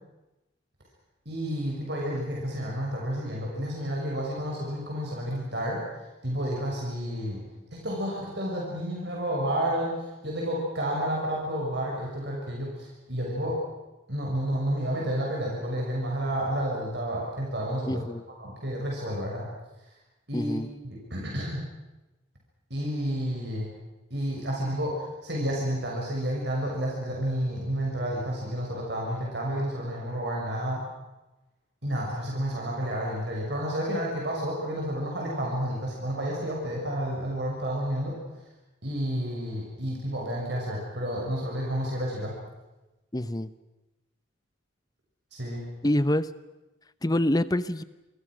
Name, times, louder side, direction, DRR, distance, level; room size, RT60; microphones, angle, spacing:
voice 1, 1.2-5.8 6.2-7.4 7.7-10.0 10.2-13.6 14.1-18.0 18.4-19.5 20.3-20.5 20.8-21.6 22.7-23.7 24.1-30.8 31.8-38.2 38.8-42.3 45.3-45.6, equal, 55° right, -2 dB, 6.5 m, -30 dB
voice 2, 17.9-18.2 20.3-20.7 43.1-43.5 45.8-46.3 47.0-47.8, left 1 dB, 20° left, 15 dB, 0.8 m, -26 dB
29.5 x 24.5 x 6.3 m, 1.1 s
head